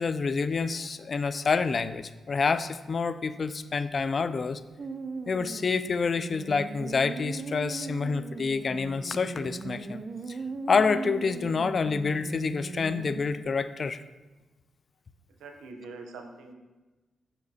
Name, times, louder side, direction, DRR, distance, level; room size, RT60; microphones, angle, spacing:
voice 1, 0.0-4.6 5.3-10.0 10.3-10.4 10.7-14.0, left 5 dB, 50° left, 13 dB, 0.3 m, -28 dB
sound 1, 4.8-13.3, right 4 dB, 50° right, 0.5 m, -39 dB
voice 2, 15.4-16.5, right 3 dB, 85° right, 4 dB, 0.7 m, -43 dB
6.7 x 5.7 x 2.7 m, 1.2 s
supercardioid pair, 55°, 0 cm